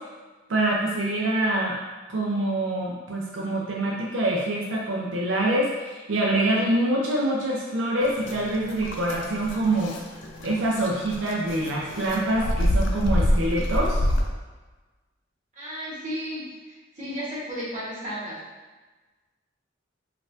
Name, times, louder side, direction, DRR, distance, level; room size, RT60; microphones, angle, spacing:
voice 1, 0.5-1.8 2.1-9.9 10.4-14.0, right 1 dB, 80° right, -3 dB, 0.5 m, -25 dB
sound 1, 8.0-14.2, equal, 75° left, 0.4 m, -27 dB
voice 2, 15.6-18.4, equal, 40° right, -8 dB, 1.1 m, -34 dB
4.0 x 2.4 x 2.5 m, 1.3 s
head